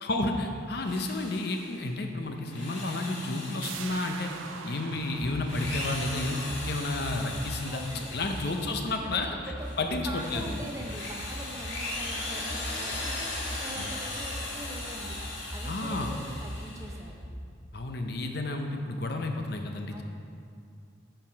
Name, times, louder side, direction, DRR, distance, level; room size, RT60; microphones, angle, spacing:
voice 1, 0.0-4.3 4.6-6.4 6.6-7.8 8.1-9.3 9.8-10.5 13.8-13.9 15.6-16.1 17.7-20.0, left 2 dB, 55° left, 4 dB, 0.7 m, -31 dB
Drill, 0.8-1.9 2.4-4.8 5.3-9.0 9.5-17.0, left 2 dB, 70° left, 1.7 m, -38 dB
sound 1, 3.6-9.1 9.4-9.5, right 7 dB, 85° right, 0.4 m, -45 dB
sound 2, 5.2-17.5, equal, 5° left, 1.5 m, -41 dB
voice 2, 7.7-8.8 9.0-13.2 13.6-15.2 15.5-17.2 19.9-20.0, right 1 dB, 15° right, 1 dB, 0.6 m, -43 dB
9.0 x 4.7 x 5.1 m, 2.4 s
head